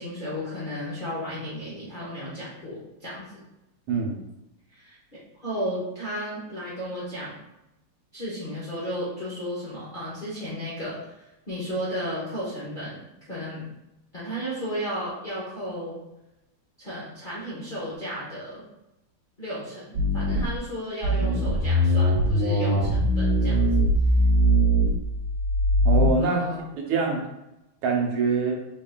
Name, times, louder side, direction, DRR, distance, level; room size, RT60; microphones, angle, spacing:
voice 1, 0.0-3.4 4.7-5.0 5.4-7.4 8.1-13.0 13.3-13.6 14.1-16.0 16.8-18.6 19.4-23.7 26.2-26.6, equal, 40° left, -9 dB, 0.8 m, -34 dB
voice 2, 3.9-4.2 25.8-26.4 26.8-27.2 27.8-28.5, right 4 dB, 80° right, 0 dB, 1.6 m, -24 dB
sound 1, 19.9-20.6 21.0-26.1, equal, 50° right, 1.4 m, -21 dB
4.0 x 3.8 x 2.2 m, 0.93 s
omnidirectional pair, 2.4 m